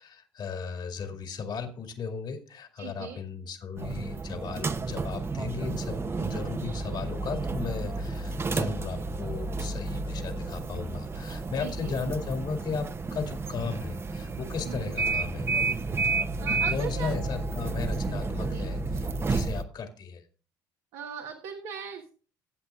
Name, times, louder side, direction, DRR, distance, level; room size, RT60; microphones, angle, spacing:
voice 1, 0.0-15.5 16.5-20.2, left 5 dB, 50° left, 5 dB, 2.3 m, -36 dB
voice 2, 2.8-3.2 11.6-12.0 14.6-14.9 16.4-17.1 18.5-18.7 20.9-22.1, right 7 dB, 75° right, 2 dB, 1.3 m, -39 dB
sound 1, 3.8-19.6, right 3 dB, 25° right, 0.8 m, -31 dB
20.0 x 8.2 x 2.4 m, 0.38 s
hypercardioid pair, 65°, 10 cm